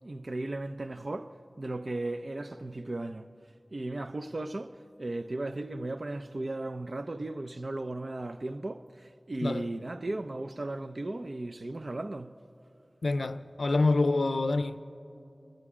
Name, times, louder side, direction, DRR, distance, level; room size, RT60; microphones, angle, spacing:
voice 1, 0.0-3.3 3.7-12.4, right 2 dB, 60° right, 0.6 m, -36 dB
voice 2, 13.0-14.8, left 3 dB, 90° left, 0.5 m, -27 dB
29.0 x 20.0 x 5.0 m
wide cardioid pair, 50°, 0 cm